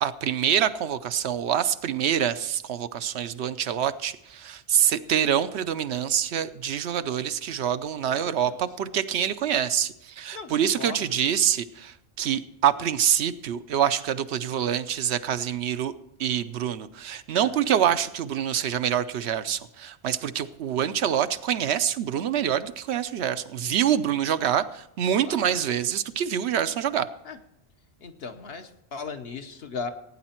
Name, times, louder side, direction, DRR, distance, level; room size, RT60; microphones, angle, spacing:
voice 1, 0.0-15.9 16.2-27.1, right 9 dB, 75° right, 12 dB, 0.9 m, -26 dB
voice 2, 8.1-8.6 10.3-11.1 17.3-17.7 23.6-24.2 25.2-25.6 27.2-27.4 28.0-29.9, left 4 dB, 65° left, 7 dB, 1.1 m, -38 dB
16.5 x 9.0 x 4.4 m, 0.81 s
omnidirectional pair, 1.1 m